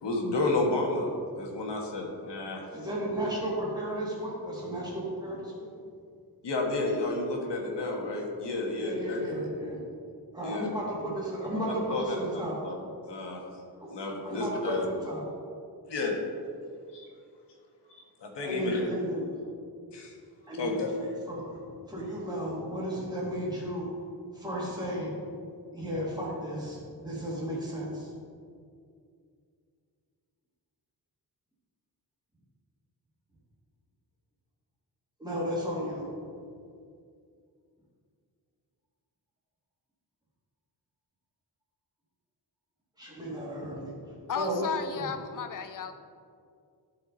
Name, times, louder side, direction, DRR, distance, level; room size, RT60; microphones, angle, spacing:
voice 1, 0.0-1.1 1.3-2.7 6.4-9.5 10.4-10.7 11.9-12.7 13.0-13.4 13.9-14.8 15.9-16.2 16.9-17.1 17.9-18.9 19.9-20.1 20.6-20.9, left 2 dB, 85° left, 0 dB, 1.5 m, -31 dB
voice 2, 2.7-5.8 8.8-9.8 10.3-12.6 13.8-13.9 14.2-15.2 18.4-19.4 20.5-23.9 24.3-25.2 25.7-28.1 35.2-36.1 43.0-44.0 44.3-45.1, equal, 10° right, -6 dB, 2.1 m, -34 dB
voice 3, 44.3-45.9, left 7 dB, 50° left, 9 dB, 0.6 m, -34 dB
12.0 x 4.9 x 4.0 m, 2.3 s
wide cardioid pair, 160°, 41 cm